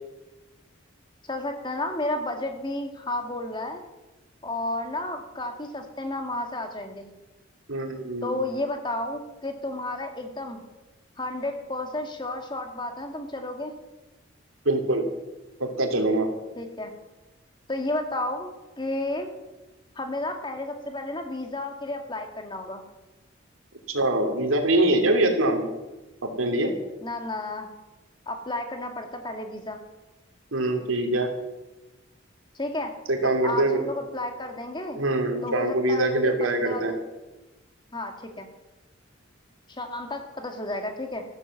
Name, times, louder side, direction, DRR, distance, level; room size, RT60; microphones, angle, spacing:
voice 1, 1.3-3.8 4.4-7.1 8.2-10.6 11.2-13.7 16.6-16.9 17.7-18.5 18.8-19.3 20.0-22.8 27.0-27.7 28.3-29.8 32.5-32.9 33.2-35.0 35.4-37.0 37.9-38.5 39.7-41.2, left 2 dB, 25° left, 5 dB, 2.0 m, -32 dB
voice 2, 7.7-8.3 14.6-15.0 15.6-16.3 23.9-25.6 26.2-26.7 30.5-31.3 33.1-33.8 34.9-36.9, right 1 dB, 90° right, 4 dB, 2.8 m, -23 dB
14.0 x 13.0 x 7.3 m, 1.1 s
head